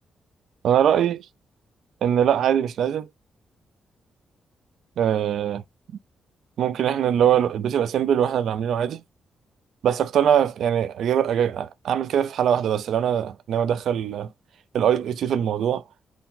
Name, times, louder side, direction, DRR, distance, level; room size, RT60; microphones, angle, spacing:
voice 1, 0.6-1.3 2.0-3.1 5.0-5.6 6.6-9.0 9.8-14.3 14.7-15.8, right 9 dB, 75° right, 0.4 m, -22 dB
4.5 x 2.1 x 3.6 m
supercardioid pair, 60°, 0 cm